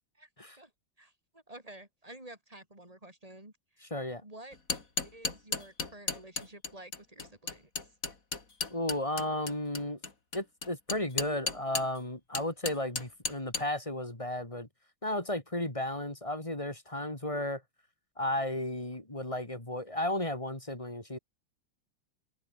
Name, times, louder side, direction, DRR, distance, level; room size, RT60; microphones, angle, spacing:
voice 1, 1.0-3.9 4.2-4.6 5.0-7.7, right 1 dB, 20° right, 6.8 m, -51 dB
voice 2, 3.8-4.2 8.7-10.0 10.3-14.7 15.0-17.6 18.2-21.2, left 1 dB, 15° left, 3.1 m, -34 dB
sound 1, 4.5-12.0 12.3-13.7, left 4 dB, 45° left, 3.3 m, -34 dB
open air
omnidirectional pair, 2.0 m